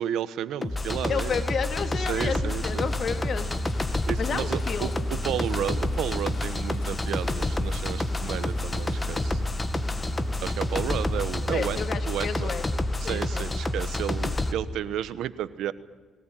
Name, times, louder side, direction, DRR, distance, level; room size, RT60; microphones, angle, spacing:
voice 1, 0.0-1.4 2.1-2.9 4.1-9.4 10.4-11.8 12.1-12.5 13.0-15.7, right 11 dB, 85° right, 15 dB, 1.1 m, -32 dB
sound 1, 0.6-14.5, left 1 dB, 20° left, 2.0 m, -28 dB
voice 2, 1.1-3.6 4.2-4.9 11.5-12.6 13.0-13.5, left 6 dB, 55° left, 9 dB, 2.3 m, -31 dB
Engine, 1.4-9.8, left 3 dB, 75° left, 4.9 m, -49 dB
sound 2, 2.6-11.6, right 1 dB, 20° right, 1.8 m, -42 dB
21.5 x 19.0 x 9.0 m, 1.4 s
cardioid pair, 90°, 0 cm